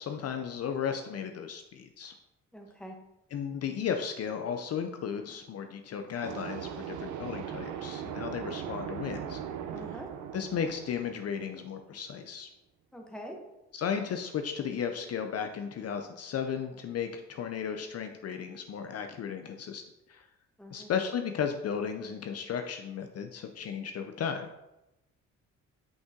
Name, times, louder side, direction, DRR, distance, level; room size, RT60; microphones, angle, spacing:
voice 1, 0.0-2.1 3.3-9.4 10.3-12.5 13.7-19.8 20.1-20.2 20.7-24.5, left 7 dB, 55° left, 6 dB, 0.6 m, -35 dB
voice 2, 2.5-3.0 9.7-10.1 12.9-13.4 20.6-20.9, equal, 5° left, 1 dB, 1.1 m, -44 dB
sound 1, 6.2-11.9, right 9 dB, 80° right, 0.7 m, -39 dB
5.6 x 5.4 x 3.7 m, 0.93 s
cardioid pair, 90°, 30 cm